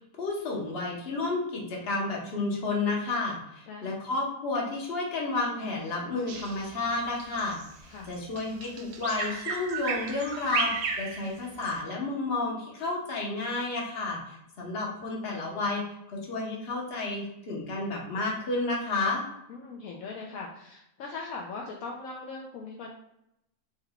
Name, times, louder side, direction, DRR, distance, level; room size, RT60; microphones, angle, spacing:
voice 1, 0.2-7.6 8.1-15.8 16.1-19.2, left 3 dB, 45° left, -2 dB, 1.2 m, -31 dB
Bird vocalization bird call bird song, 6.3-11.8, right 5 dB, 65° right, 0.7 m, -34 dB
voice 2, 19.5-22.9, left 4 dB, 75° left, -1 dB, 1.0 m, -40 dB
4.3 x 3.7 x 2.3 m, 0.82 s
omnidirectional pair, 1.5 m